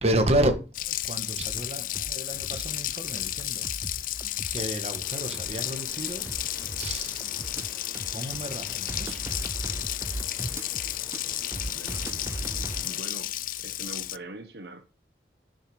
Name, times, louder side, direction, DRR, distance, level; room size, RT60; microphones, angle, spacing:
voice 1, 0.0-3.9 4.5-6.2 6.8-7.3 8.1-9.2, right 1 dB, 35° right, 1.6 m, -30 dB
Water tap faucet, 0.7-14.2, left 14 dB, 50° left, 0.4 m, -33 dB
sound 1, 1.4-12.9, right 1 dB, 15° right, 0.4 m, -39 dB
sound 2, 5.0-13.0, left 1 dB, 20° left, 4.9 m, -49 dB
voice 2, 11.5-14.8, right 2 dB, 70° right, 1.1 m, -44 dB
10.5 x 6.7 x 5.0 m
head